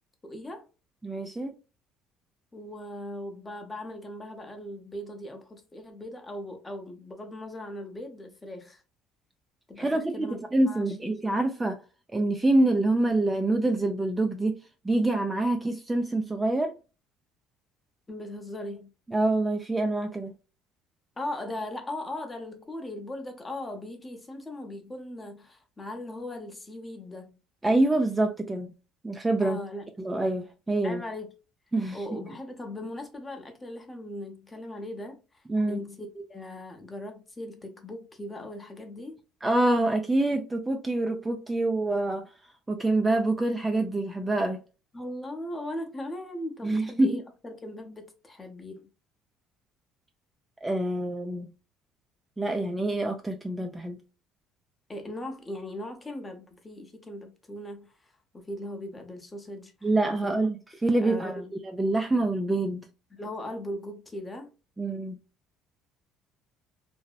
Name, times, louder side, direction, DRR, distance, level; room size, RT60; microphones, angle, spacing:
voice 1, 0.2-0.7 2.5-8.8 9.7-10.4 10.7-11.1 18.1-18.9 21.2-27.4 29.4-29.9 30.8-31.3 31.9-39.2 44.9-48.9 54.9-60.4 61.0-61.5 63.1-64.5, left 1 dB, 20° left, 0.7 m, -39 dB
voice 2, 1.0-1.5 9.8-11.8 12.1-14.6 14.8-16.8 19.1-20.3 27.6-28.7 29.0-29.6 30.0-31.0 31.7-32.0 35.5-35.8 39.4-42.3 42.7-44.6 46.6-47.2 50.6-51.5 52.4-54.0 59.8-60.6 60.8-61.3 61.6-62.9 64.8-65.2, right 2 dB, 15° right, 0.3 m, -26 dB
2.7 x 2.0 x 2.3 m
cardioid pair, 105°, 0 cm